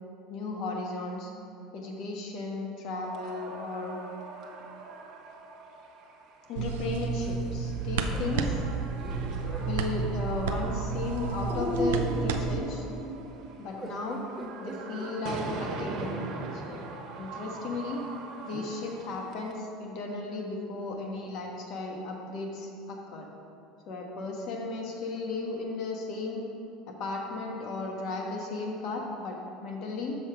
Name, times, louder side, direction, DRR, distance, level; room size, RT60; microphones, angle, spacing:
voice 1, 0.3-1.3 1.7-4.0 6.5-8.5 9.6-12.9 13.6-14.2 14.6-16.9 17.2-18.0 18.4-23.3 23.9-26.4 26.9-30.2, left 3 dB, 60° left, 0 dB, 1.3 m, -35 dB
sound 1, 2.9-19.5, right 4 dB, 55° right, 1.0 m, -43 dB
sound 2, 6.6-12.6, right 5 dB, 80° right, 0.5 m, -31 dB
sound 3, 7.9-9.8 10.6-11.0 11.5-16.2 16.8-16.9 18.5-18.7, equal, 5° right, 1.0 m, -37 dB
6.3 x 6.0 x 4.7 m, 2.6 s
supercardioid pair, 95°, 0 cm